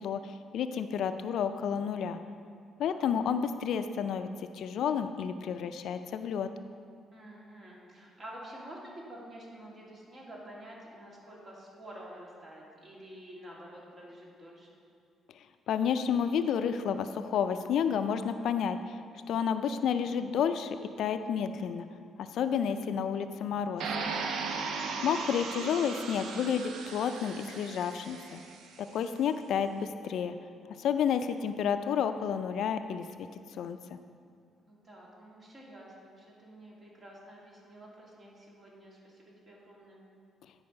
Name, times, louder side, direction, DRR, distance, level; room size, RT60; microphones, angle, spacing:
voice 1, 0.0-2.2 2.8-4.3 4.5-6.5 15.7-19.0 19.3-21.9 22.2-23.8 25.0-28.4 28.8-30.3 30.8-33.3 33.5-34.0, left 7 dB, 75° left, 9 dB, 0.4 m, -30 dB
voice 2, 7.1-14.7 24.3-24.6 34.7-40.0, right 1 dB, 40° right, -4 dB, 2.4 m, -49 dB
sound 1, 23.8-28.8, right 4 dB, 80° right, 0.7 m, -37 dB
10.5 x 4.7 x 5.3 m, 2.2 s
cardioid pair, 90°, 0 cm